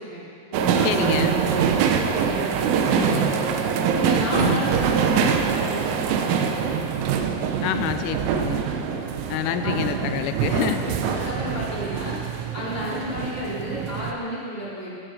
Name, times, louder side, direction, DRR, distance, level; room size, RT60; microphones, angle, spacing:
voice 1, 0.0-3.6 4.0-7.1 7.6-8.6 9.6-9.7 10.5-12.2 12.5-14.9, equal, 15° left, -9 dB, 3.1 m, -33 dB
sound 1, 0.5-14.1, right 6 dB, 80° right, 3.2 m, -24 dB
voice 2, 0.8-1.3 4.3-4.6 7.6-8.6 9.3-10.8, left 11 dB, 85° left, 9 dB, 3.1 m, -27 dB
16.0 x 13.5 x 4.0 m, 2.4 s
omnidirectional pair, 5.8 m